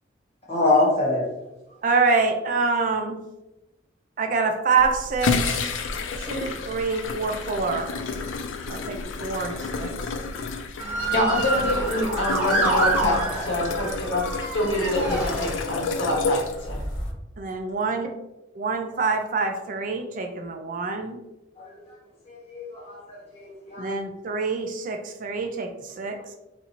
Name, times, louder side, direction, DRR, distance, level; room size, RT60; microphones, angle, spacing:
voice 1, 0.5-1.2 8.7-8.8 21.6-21.9 22.3-23.9, left 2 dB, 30° left, -5 dB, 1.3 m, -25 dB
voice 2, 1.8-3.2 4.2-5.7 6.2-7.9 8.7-9.9 17.4-18.1 18.5-21.2 23.8-26.3, right 4 dB, 45° right, 4 dB, 0.4 m, -26 dB
sound 1, 4.8-17.1, left 4 dB, 90° left, 0.4 m, -30 dB
Motor vehicle (road) / Siren, 10.8-16.0 16.7-17.1, right 2 dB, 10° right, 1.3 m, -27 dB
voice 3, 11.1-16.8, left 1 dB, 75° left, -2 dB, 1.1 m, -26 dB
4.0 x 2.5 x 2.9 m, 0.97 s
head